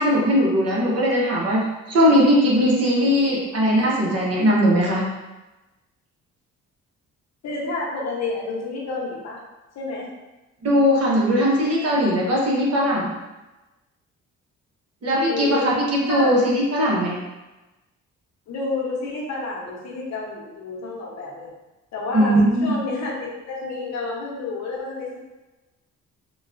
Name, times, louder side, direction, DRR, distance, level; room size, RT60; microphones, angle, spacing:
voice 1, 0.0-5.0 10.6-13.1 15.0-17.2 22.1-22.7, equal, 55° right, -4 dB, 1.0 m, -19 dB
voice 2, 3.8-4.2 7.4-9.4 9.7-10.1 15.3-15.8 16.1-16.4 18.5-21.5 21.9-25.2, left 3 dB, 60° left, -2 dB, 0.9 m, -30 dB
3.8 x 2.3 x 2.5 m, 1.1 s
cardioid pair, 90°, 30 cm